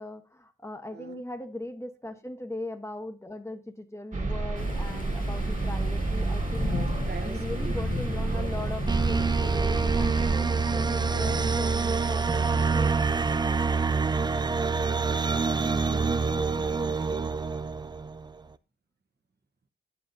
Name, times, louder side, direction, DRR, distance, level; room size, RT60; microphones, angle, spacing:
voice 1, 0.0-6.8 7.2-13.0, left 1 dB, 15° left, 7 dB, 1.1 m, -39 dB
sound 1, 4.1-10.3, right 2 dB, 35° right, 1.6 m, -30 dB
Thunder / Rain, 4.5-13.4, left 5 dB, 45° left, 0.6 m, -39 dB
voice 2, 6.7-7.7 8.1-8.2 15.5-17.3, right 4 dB, 55° right, 7 dB, 1.1 m, -43 dB
sound 2, 8.9-18.3, right 4 dB, 20° right, 0.4 m, -26 dB
9.4 x 7.3 x 2.7 m, 0.34 s
cardioid pair, 60°, 20 cm